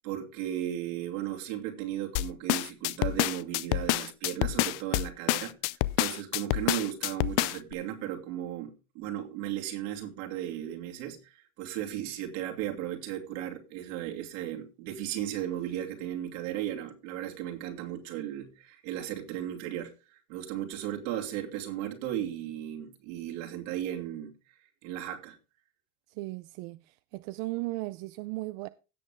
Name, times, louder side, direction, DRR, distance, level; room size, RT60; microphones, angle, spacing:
voice 1, 0.0-5.5 6.0-24.3 24.8-25.4, right 11 dB, 65° right, 2.8 m, -36 dB
sound 1, 2.1-7.7, left 19 dB, 55° left, 0.6 m, -28 dB
voice 2, 26.1-28.7, right 21 dB, 50° right, 0.5 m, -36 dB
16.5 x 6.2 x 3.6 m
supercardioid pair, 135°, 41 cm